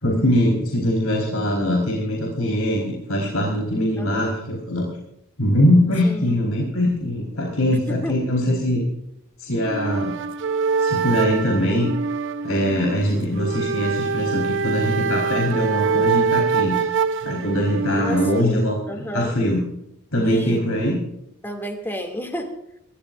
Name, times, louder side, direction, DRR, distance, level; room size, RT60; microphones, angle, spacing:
voice 1, 0.0-4.8 5.4-8.9 9.4-10.1 10.8-11.9 12.4-16.8 17.2-19.6 20.1-21.0, left 1 dB, 90° left, -3 dB, 4.7 m, -22 dB
voice 2, 4.0-4.4 6.0-6.4 7.7-8.2 17.9-18.6 18.9-19.3 20.2-20.9 21.4-22.5, equal, 10° left, 3 dB, 2.6 m, -31 dB
sound 1, 9.6-18.4, right 5 dB, 60° right, 0.7 m, -24 dB
26.5 x 14.5 x 2.6 m, 0.81 s
head